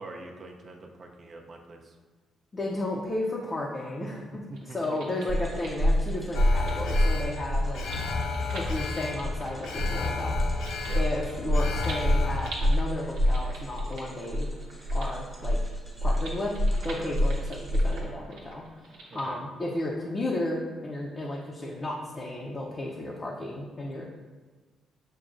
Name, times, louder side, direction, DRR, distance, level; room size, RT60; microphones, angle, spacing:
voice 1, 0.0-2.0 4.0-4.1 4.5-5.3 10.9-11.0 17.0-17.1 19.1-19.4, right 2 dB, 45° right, 2 dB, 0.5 m, -44 dB
voice 2, 2.5-7.9 8.5-10.4 11.0-14.5 14.9-15.6 16.0-16.5 16.8-24.0, left 1 dB, 30° left, -3 dB, 0.5 m, -33 dB
sound 1, 4.5-19.3, right 2 dB, 80° right, 0.8 m, -46 dB
sound 2, 5.3-18.0, equal, ahead, 0.8 m, -27 dB
Alarm, 6.3-12.5, left 4 dB, 80° left, 0.4 m, -33 dB
6.1 x 2.2 x 2.5 m, 1.4 s
cardioid pair, 90°, 0 cm